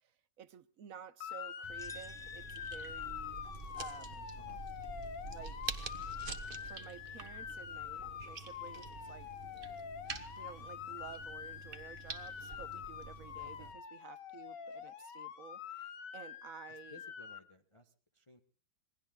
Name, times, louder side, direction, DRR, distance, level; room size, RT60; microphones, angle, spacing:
voice 1, 0.0-3.4 3.8-4.3 5.3-5.6 6.6-9.3 10.3-17.0, right 8 dB, 55° right, 1.2 m, -53 dB
Motor vehicle (road) / Siren, 1.2-17.4, left 8 dB, 70° left, 1.8 m, -45 dB
sound 1, 1.6-13.7, right 4 dB, 30° right, 1.4 m, -47 dB
sound 2, 1.8-3.6, right 2 dB, 5° left, 0.5 m, -56 dB
voice 2, 4.4-4.7 13.4-13.8 16.7-18.4, left 2 dB, 20° left, 1.1 m, -59 dB
27.5 x 21.5 x 2.4 m
omnidirectional pair, 2.0 m